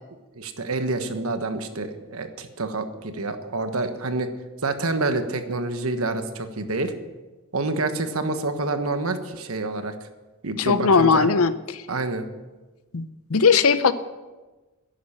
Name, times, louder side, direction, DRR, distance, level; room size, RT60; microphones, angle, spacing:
voice 1, 0.3-4.3 4.6-6.9 7.5-9.9 10.4-11.3 11.9-12.2, right 2 dB, 70° right, 8 dB, 1.3 m, -27 dB
voice 2, 10.6-11.8 12.9-13.9, left 5 dB, 75° left, 13 dB, 0.7 m, -19 dB
11.0 x 10.5 x 7.3 m, 1.2 s
head